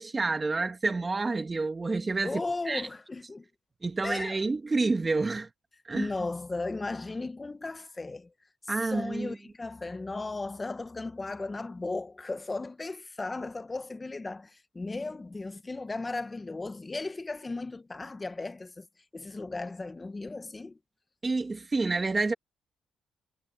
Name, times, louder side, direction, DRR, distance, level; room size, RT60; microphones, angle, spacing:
voice 1, 0.0-2.4 2.7-2.9 3.8-5.5 5.9-6.1 8.7-9.4 21.2-22.3, right 3 dB, 25° right, 2.0 m, -29 dB
voice 2, 2.2-3.5 4.0-4.4 5.9-8.3 8.8-18.9 19.1-20.8, left 3 dB, 20° left, 1.3 m, -36 dB
cardioid pair, 90°, 0 cm